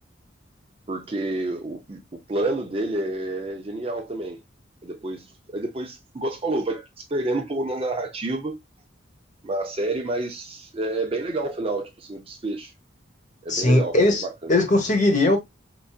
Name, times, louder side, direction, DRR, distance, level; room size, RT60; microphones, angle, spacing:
voice 1, 0.9-4.4 4.8-8.5 9.4-12.7 13.4-14.5, right 2 dB, 30° right, 0.5 m, -29 dB
voice 2, 13.5-14.2 14.5-15.4, left 2 dB, 40° left, 1.0 m, -19 dB
4.6 x 2.6 x 2.3 m
head